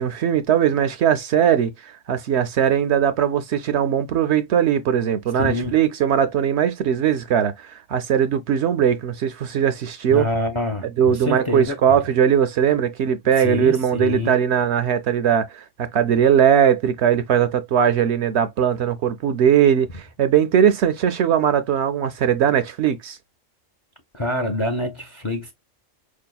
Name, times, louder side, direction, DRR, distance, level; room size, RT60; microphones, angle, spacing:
voice 1, 0.0-10.2 11.0-23.2, right 9 dB, 65° right, 0.8 m, -20 dB
voice 2, 5.4-5.7 10.1-12.0 13.4-14.4 24.1-25.5, left 1 dB, 35° left, 0.5 m, -26 dB
4.9 x 2.7 x 2.2 m
omnidirectional pair, 1.3 m